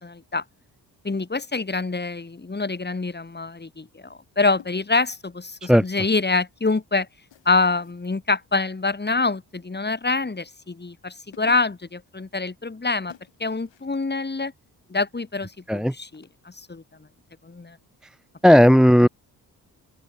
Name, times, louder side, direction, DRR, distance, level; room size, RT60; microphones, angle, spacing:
voice 1, 0.0-0.4 1.0-7.1 7.5-13.1 13.4-14.5 14.9-16.8 17.4-17.8 19.0-19.1, left 3 dB, 25° left, 1.8 m, -26 dB
sound 1, 7.3-8.1 9.8-10.4 11.0-11.1 11.3-11.9 13.1-14.1 16.1-16.3, left 11 dB, 80° left, 5.1 m, -51 dB
voice 2, 18.4-19.1, equal, ahead, 0.6 m, -14 dB
open air
supercardioid pair, 45°, 44 cm